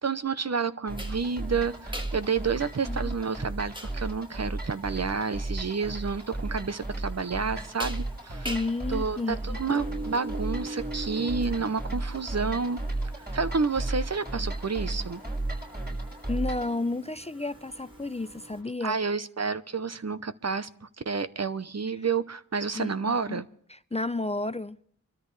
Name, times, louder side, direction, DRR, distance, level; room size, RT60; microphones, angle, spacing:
voice 1, 0.0-8.5 8.9-12.8 13.2-15.2 18.8-23.5, right 5 dB, 50° right, 0.8 m, -30 dB
sound 1, 0.9-16.7, right 2 dB, 30° right, 6.4 m, -34 dB
sound 2, 1.0-18.6, right 1 dB, 15° right, 1.6 m, -43 dB
sound 3, 6.8-18.7, left 1 dB, 85° right, 5.8 m, -59 dB
voice 2, 8.4-9.6 16.3-19.0 22.0-22.1 22.7-23.4 23.7-24.8, left 2 dB, 20° left, 0.5 m, -32 dB
25.0 x 13.5 x 3.3 m
cardioid pair, 40°, 33 cm